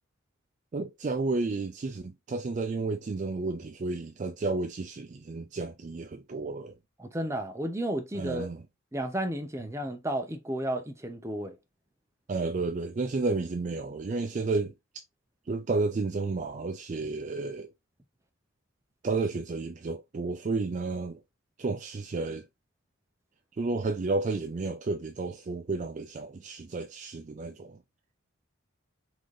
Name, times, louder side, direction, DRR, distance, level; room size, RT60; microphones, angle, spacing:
voice 1, 0.7-6.7 8.1-8.6 12.3-14.7 15.5-17.7 19.0-21.2 21.6-22.5 23.6-27.8, right 3 dB, 35° right, 0.3 m, -31 dB
voice 2, 7.0-8.5 8.9-11.6, right 1 dB, 15° right, 0.7 m, -32 dB
4.0 x 3.7 x 3.2 m
head